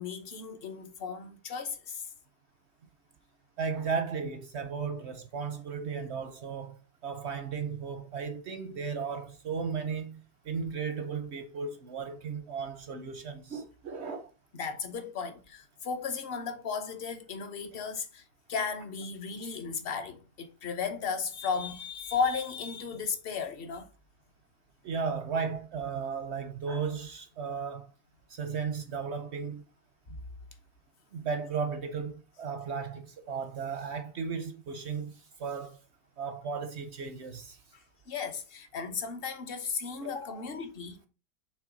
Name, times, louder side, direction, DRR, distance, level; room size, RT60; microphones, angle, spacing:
voice 1, 0.0-2.1 14.6-18.2 18.5-23.9 38.1-41.1, left 5 dB, 45° left, 0.8 m, -35 dB
voice 2, 3.6-14.3 24.8-27.9 28.3-29.6 31.1-35.8 36.2-37.6 40.0-40.1, right 5 dB, 60° right, 0.7 m, -35 dB
6.8 x 3.2 x 5.0 m
omnidirectional pair, 1.8 m